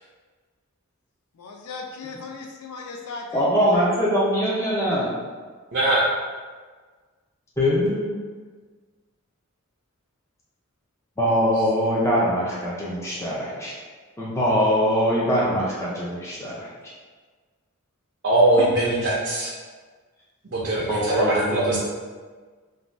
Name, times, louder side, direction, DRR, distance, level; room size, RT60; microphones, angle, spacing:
voice 1, 1.3-3.9, left 3 dB, 90° left, 2 dB, 0.4 m, -37 dB
voice 2, 3.3-5.1 7.6-8.2 11.2-13.7 14.2-16.7 20.9-21.8, equal, 15° left, -7 dB, 0.4 m, -22 dB
voice 3, 5.7-6.0 18.2-19.5 20.5-21.8, right 2 dB, 55° right, -7 dB, 0.5 m, -21 dB
2.6 x 2.2 x 3.1 m, 1.5 s
head